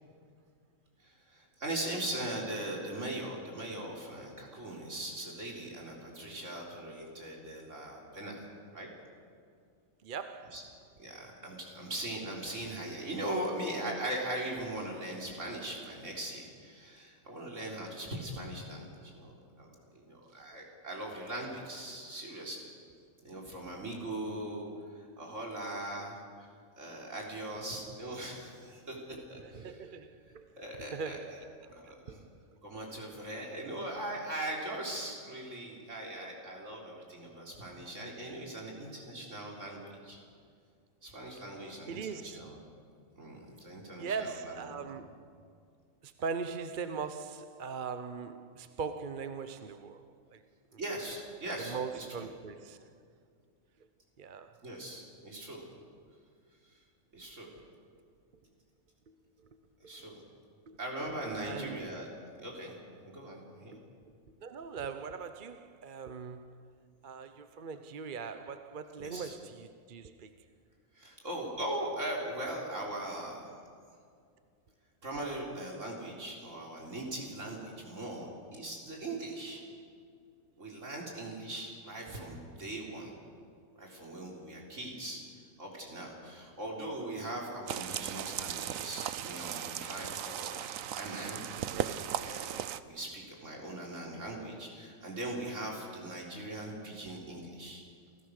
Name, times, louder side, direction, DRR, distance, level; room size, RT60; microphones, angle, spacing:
voice 1, 1.0-8.5 8.7-8.9 10.5-10.6 11.0-19.7 19.9-22.6 23.2-24.7 24.9-26.5 26.8-29.8 30.6-31.2 31.7-32.2 32.6-40.2 41.0-42.6 43.2-44.6 50.8-52.3 54.6-55.6 56.7-56.8 57.1-57.5 59.8-60.2 60.8-62.1 62.4-62.8 63.0-63.8 69.0-69.3 70.9-73.5 75.0-79.6 80.6-83.1 83.8-85.2 85.6-90.6 91.0-91.4 92.2-92.6 92.8-97.8, right 1 dB, 60° right, 4.2 m, -40 dB
voice 2, 10.0-10.7 20.3-20.4 29.1-32.6 41.9-42.5 44.0-45.3 46.0-50.4 50.7-50.8 51.6-52.9 53.8-53.9 54.2-54.6 59.1-60.1 60.7-60.8 61.5-61.9 63.7-66.7 67.0-70.3, right 5 dB, 45° right, 0.8 m, -41 dB
sound 1, 87.7-92.8, right 10 dB, 75° right, 1.1 m, -37 dB
29.0 x 15.5 x 6.5 m
omnidirectional pair, 1.4 m